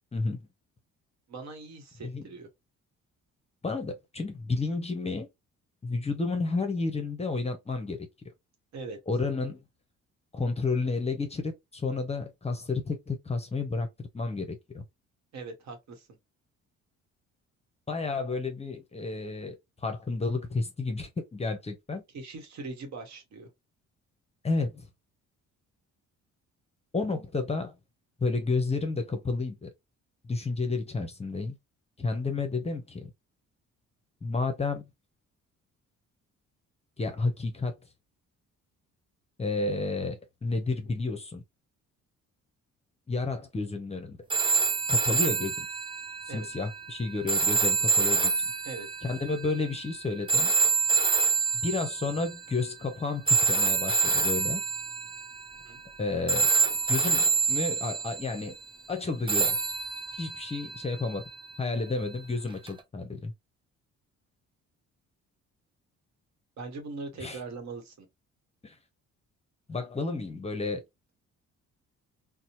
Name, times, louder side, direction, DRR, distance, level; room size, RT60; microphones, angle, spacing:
voice 1, 1.3-2.5 8.7-9.0 15.3-16.1 22.1-23.5 46.3-46.5 48.6-48.9 55.6-55.8 66.6-68.1, right 3 dB, 65° right, 1.0 m, -41 dB
voice 2, 3.6-5.3 5.8-8.1 9.1-9.6 10.3-14.8 17.9-19.6 19.8-22.0 24.4-24.9 26.9-27.7 28.2-29.7 30.2-31.6 32.0-33.1 34.2-34.8 37.0-37.7 39.4-41.4 43.1-44.2 44.9-45.7 46.3-48.3 49.0-50.5 51.6-54.6 56.0-56.5 56.9-58.6 58.9-59.6 60.1-61.3 61.6-63.3 67.2-67.4 68.6-68.7 69.7-70.8, left 3 dB, 20° left, 0.7 m, -31 dB
sound 1, 44.3-52.5 53.3-56.0 56.3-58.4 59.3-61.5 62.7-62.8, right 4 dB, 15° right, 0.5 m, -27 dB
2.7 x 2.0 x 2.8 m
cardioid pair, 90°, 30 cm